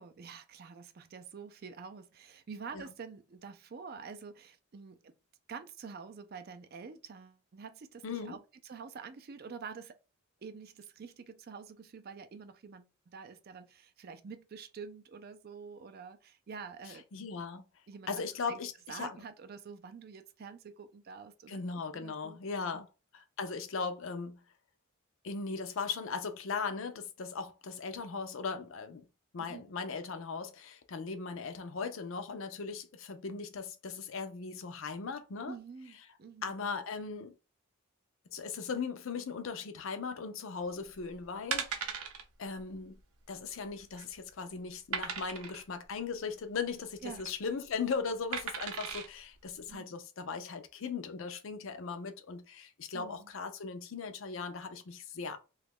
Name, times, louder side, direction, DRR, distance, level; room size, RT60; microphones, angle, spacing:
voice 1, 0.0-5.1 5.5-8.4 8.6-10.0 10.4-17.2 17.9-18.6 18.9-21.6 21.9-22.4 22.7-22.8 29.4-29.6 35.5-36.5 47.0-47.2 49.7-49.9 52.9-53.3, right 5 dB, 45° right, 0.4 m, -47 dB
voice 2, 8.0-8.4 16.9-17.6 18.1-19.2 21.5-22.9 23.1-24.4 25.2-29.0 29.3-35.5 36.4-37.3 38.3-42.0 42.4-43.0 43.3-55.4, left 5 dB, 60° left, 0.5 m, -38 dB
sound 1, 40.8-41.0 41.5-42.2 42.6-42.7 43.0-43.1 43.7-44.1 44.9-45.6 46.9-47.3 48.3-49.1 49.7-49.8, right 6 dB, 90° right, 0.6 m, -37 dB
3.0 x 2.4 x 3.5 m
head